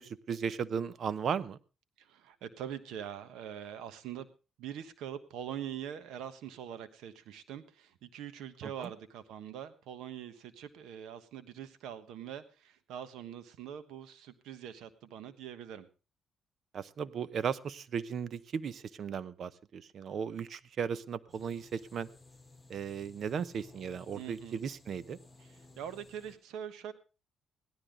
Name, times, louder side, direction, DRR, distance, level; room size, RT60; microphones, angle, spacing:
voice 1, 0.0-1.6 8.6-8.9 16.7-22.1 22.7-25.2, right 7 dB, 60° right, 18 dB, 0.8 m, -36 dB
voice 2, 2.0-4.3 4.6-15.9 24.2-24.6 25.4-26.9, right 9 dB, 85° right, 12 dB, 1.3 m, -43 dB
sound 1, 21.3-26.4, left 3 dB, 10° left, 6.4 m, -57 dB
17.0 x 12.5 x 3.8 m, 0.32 s
cardioid pair, 90°, 0 cm